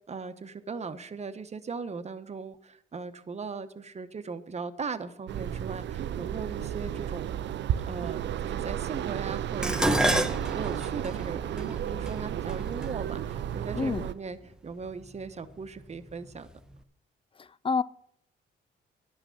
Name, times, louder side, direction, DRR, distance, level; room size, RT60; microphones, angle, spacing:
voice 1, 0.1-7.3 7.8-16.5, right 5 dB, 35° right, 1.1 m, -38 dB
sound 1, 5.3-14.1, right 10 dB, 65° right, 0.5 m, -33 dB
Dishes pots and pans, 9.6-14.0 14.9-15.3 15.7-16.5 16.7-16.8, right 1 dB, 5° right, 0.8 m, -30 dB
voice 2, 13.7-14.1 17.4-17.8, left 5 dB, 25° left, 0.5 m, -28 dB
11.5 x 6.0 x 8.3 m
cardioid pair, 90°, 20 cm